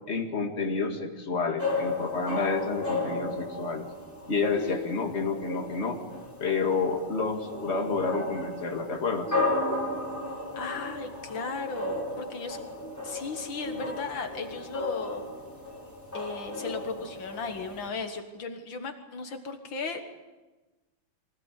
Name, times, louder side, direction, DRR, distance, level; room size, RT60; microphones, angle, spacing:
voice 1, 0.1-3.9 4.3-6.0 6.4-9.4, left 4 dB, 35° left, 3 dB, 2.3 m, -29 dB
sound 1, 1.6-17.9, left 2 dB, 10° left, 4.9 m, -34 dB
voice 2, 4.5-5.1 10.5-12.6 13.0-15.2 16.1-20.0, left 4 dB, 75° left, 6 dB, 2.2 m, -36 dB
24.0 x 17.0 x 8.3 m, 1.2 s
omnidirectional pair, 2.1 m